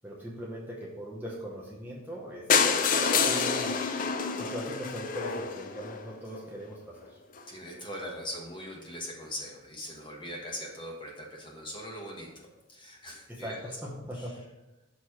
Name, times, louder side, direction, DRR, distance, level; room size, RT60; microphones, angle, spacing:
voice 1, 0.0-3.8 4.4-7.2 13.3-14.3, equal, 10° right, -4 dB, 0.7 m, -40 dB
sound 1, 2.5-6.4 7.0-7.1 7.4-7.5 7.7-7.8 8.0-8.1, left 5 dB, 40° left, 0.4 m, -27 dB
voice 2, 2.5-3.1 7.5-13.6 14.1-14.4, equal, 25° left, -1 dB, 1.1 m, -41 dB
6.4 x 3.0 x 5.6 m, 1.0 s
head